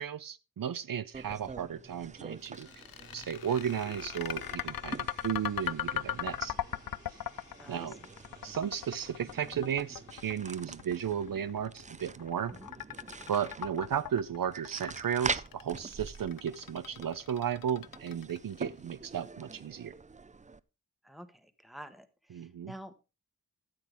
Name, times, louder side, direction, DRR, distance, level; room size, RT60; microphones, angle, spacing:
voice 1, 0.0-2.7 3.1-6.5 7.7-8.0 8.4-12.5 13.3-19.9 22.3-22.7, right 8 dB, 65° right, 0.6 m, -34 dB
sound 1, 1.1-20.6, right 4 dB, 20° right, 0.4 m, -45 dB
sound 2, 2.3-12.3, left 3 dB, 55° left, 3.4 m, -59 dB
sound 3, 2.4-18.6, left 10 dB, 70° left, 0.5 m, -39 dB
voice 2, 7.6-8.0 12.5-12.7 21.0-22.9, equal, ahead, 1.1 m, -49 dB
13.5 x 7.8 x 3.4 m
wide cardioid pair, 85°, 36 cm